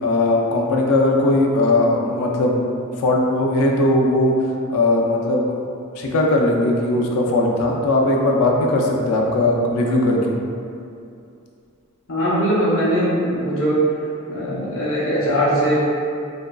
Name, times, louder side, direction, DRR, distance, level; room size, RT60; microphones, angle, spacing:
voice 1, 0.0-2.6 3.0-4.3 4.7-5.7 6.0-10.4, left 2 dB, 85° left, 0 dB, 0.4 m, -19 dB
voice 2, 12.1-13.8 14.3-15.8, equal, 65° left, -8 dB, 0.7 m, -20 dB
2.9 x 2.5 x 2.2 m, 2.5 s
head